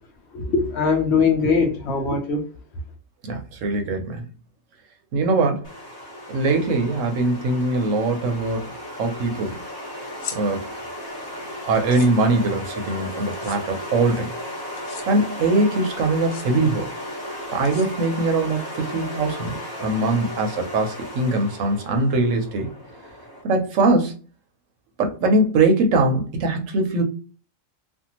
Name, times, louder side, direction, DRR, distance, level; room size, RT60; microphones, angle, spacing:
voice 1, 0.3-2.5, left 5 dB, 60° left, 2 dB, 0.8 m, -21 dB
voice 2, 3.2-4.2 5.1-5.7 6.3-8.7 9.0-9.6 10.4-10.6 11.7-14.3 15.1-16.9 17.5-19.5 19.8-22.7 23.4-24.1 25.0-27.0, right 2 dB, 70° right, 4 dB, 0.9 m, -21 dB
sound 1, 5.6-23.4, left 1 dB, 35° left, 1.1 m, -35 dB
sound 2, 10.1-10.4 11.7-12.1 13.3-13.6 14.8-15.1 16.2-16.5 17.6-18.2, left 8 dB, 80° left, 1.0 m, -37 dB
2.6 x 2.4 x 2.8 m, 0.37 s
omnidirectional pair, 1.5 m